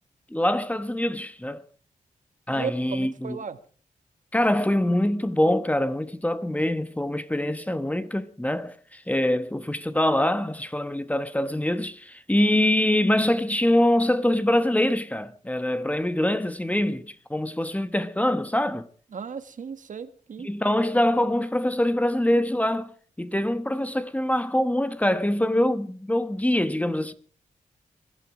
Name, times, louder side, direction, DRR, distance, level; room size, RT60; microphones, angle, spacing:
voice 1, 0.3-1.6 2.5-3.4 4.3-18.9 20.4-22.9 23.2-27.1, left 1 dB, 10° left, 1.2 m, -24 dB
voice 2, 2.5-3.6 19.1-20.5, right 6 dB, 70° right, 1.3 m, -35 dB
22.0 x 12.5 x 4.9 m
wide cardioid pair, 85°, 14 cm